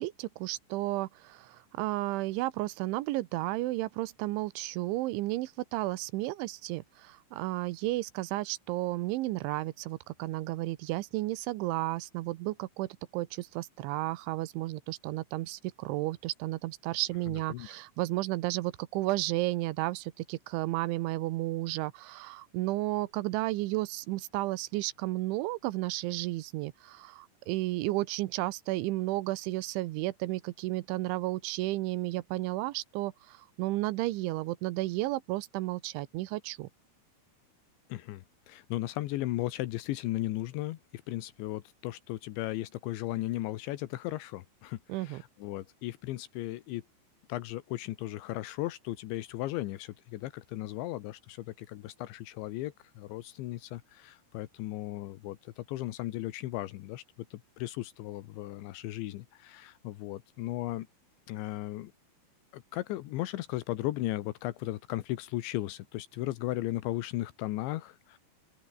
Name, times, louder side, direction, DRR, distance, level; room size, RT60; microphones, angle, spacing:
voice 1, 0.0-36.7 44.9-45.2, right 18 dB, 85° right, 3.3 m, -33 dB
voice 2, 17.3-17.7 37.9-46.8 47.3-57.0 57.3-60.9 61.3-61.9 62.5-68.2, left 16 dB, 85° left, 3.4 m, -36 dB
open air
omnidirectional pair, 5.3 m